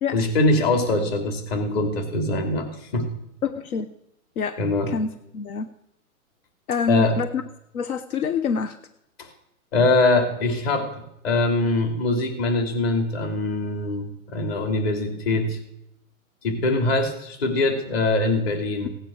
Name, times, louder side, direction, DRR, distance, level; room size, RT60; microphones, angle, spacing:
voice 1, 0.1-2.7 2.9-3.1 4.6-4.9 6.9-7.2 9.2-9.3 9.7-10.9 11.2-15.6 16.4-18.9, left 2 dB, 45° left, 4 dB, 3.1 m, -23 dB
voice 2, 3.4-3.9 4.4-4.6 4.9-5.7 6.7-7.4 7.7-8.8, left 6 dB, 80° left, 12 dB, 1.0 m, -25 dB
16.5 x 9.0 x 6.3 m, 0.80 s
hypercardioid pair, 170°, 43 cm